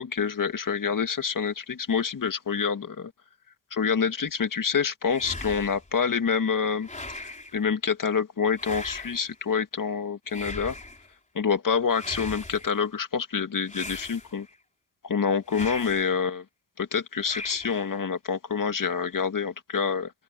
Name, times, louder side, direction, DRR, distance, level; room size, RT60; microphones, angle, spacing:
voice 1, 0.0-3.1 3.7-6.9 7.2-10.8 11.4-14.5 15.0-16.4 16.8-20.1, left 6 dB, 45° left, 2.0 m, -27 dB
sound 1, 5.1-5.9 6.8-7.6 8.5-9.4 10.3-11.1 11.9-12.7 13.7-14.6 15.5-16.2 17.2-17.9, left 2 dB, 15° left, 4.3 m, -39 dB
open air
wide cardioid pair, 145°, 43 cm